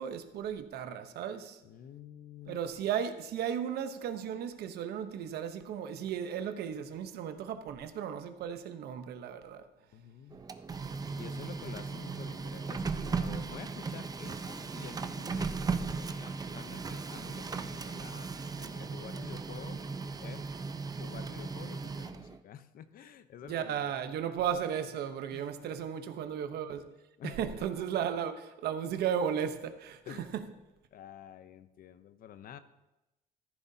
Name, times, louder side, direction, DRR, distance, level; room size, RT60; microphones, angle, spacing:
voice 1, 0.0-1.6 2.5-9.7 23.4-26.9 27.2-30.4, right 8 dB, 70° right, 1.0 m, -35 dB
voice 2, 1.6-2.6 9.9-10.4 11.2-18.3 18.6-19.8 20.2-20.5 20.9-24.0 25.3-25.7 27.2-27.8 30.1-30.3 30.9-32.6, left 9 dB, 60° left, 0.8 m, -49 dB
Printer, 10.3-22.4, right 4 dB, 20° right, 0.6 m, -37 dB
14.0 x 11.0 x 2.8 m
cardioid pair, 110°, 17 cm